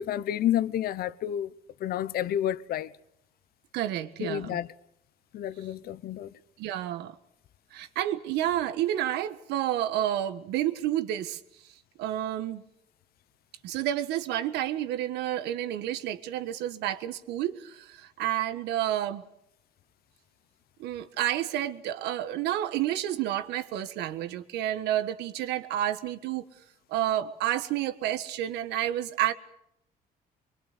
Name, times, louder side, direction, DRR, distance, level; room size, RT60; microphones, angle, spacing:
voice 1, 0.0-1.5 1.8-2.9 4.2-4.7 5.3-6.3, left 11 dB, 65° left, 0.9 m, -30 dB
voice 2, 3.7-4.6 6.6-7.1 7.7-11.4 12.0-12.6 13.6-19.2 20.8-26.4 26.9-29.3, right 12 dB, 85° right, 1.5 m, -30 dB
24.5 x 23.5 x 6.8 m
cardioid pair, 110°, 17 cm